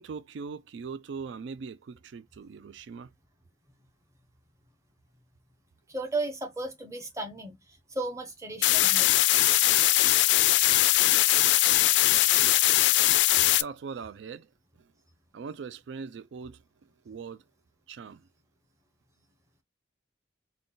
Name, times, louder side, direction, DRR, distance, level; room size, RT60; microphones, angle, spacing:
voice 1, 0.0-3.1 13.6-14.5 14.8-14.9 15.3-16.6 17.1-17.4 17.9-18.2, right 5 dB, 85° right, 0.4 m, -40 dB
voice 2, 5.9-9.2, right 2 dB, 15° right, 0.9 m, -35 dB
sound 1, 8.6-13.6, left 15 dB, 75° left, 0.3 m, -21 dB
3.8 x 2.3 x 3.8 m
head